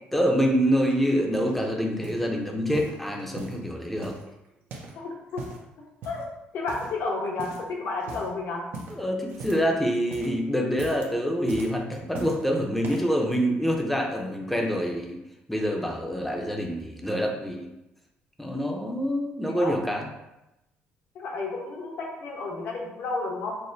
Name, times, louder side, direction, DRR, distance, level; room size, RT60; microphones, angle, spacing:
voice 1, 0.1-4.1 8.9-15.2 15.5-17.7 18.4-20.1, equal, 5° left, 1 dB, 0.6 m, -26 dB
sound 1, 0.9-1.6 2.0-2.3 2.7-3.6 4.0-5.0 5.3-5.7 6.0-6.3 6.7-7.1 7.4-7.7 8.0-8.3 8.7-9.7 10.0-10.4 10.7-11.1 11.5-12.4 12.8-13.2 13.8-13.9, right 3 dB, 70° right, 0.7 m, -40 dB
voice 2, 5.0-5.4 6.0-6.3 6.5-8.6 19.5-19.7 21.1-23.6, left 3 dB, 70° left, -1 dB, 1.0 m, -31 dB
5.9 x 2.1 x 2.6 m, 0.92 s
cardioid pair, 115°, 4 cm